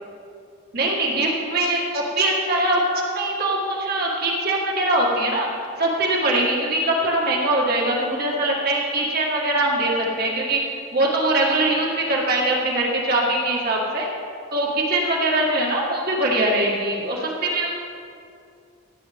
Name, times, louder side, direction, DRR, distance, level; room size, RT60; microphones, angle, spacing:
voice 1, 0.7-5.5 5.8-10.6 10.9-14.1 14.5-17.7, right 1 dB, 45° right, -3 dB, 2.0 m, -22 dB
16.5 x 9.3 x 3.7 m, 2.4 s
head